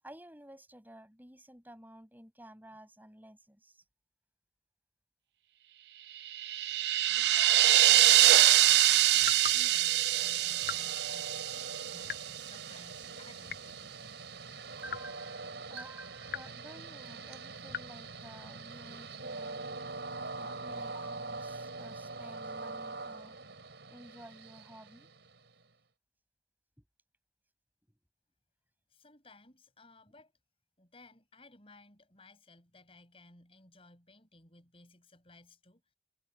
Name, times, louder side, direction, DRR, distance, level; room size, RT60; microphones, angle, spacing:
voice 1, 0.0-3.8 14.8-19.7 20.4-23.4 23.9-25.1, right 1 dB, 10° right, 7.9 m, -52 dB
sound 1, 6.2-12.5, right 14 dB, 70° right, 0.4 m, -24 dB
voice 2, 7.1-14.0 28.9-30.3 30.8-35.9, left 2 dB, 35° left, 6.6 m, -59 dB
Train, 8.9-25.6, right 3 dB, 85° right, 4.5 m, -44 dB
sound 2, 9.2-9.6 10.6-10.9 12.0-12.4 13.4-13.9 14.9-15.1 16.3-16.6 17.7-18.0, left 6 dB, 60° left, 0.6 m, -40 dB
head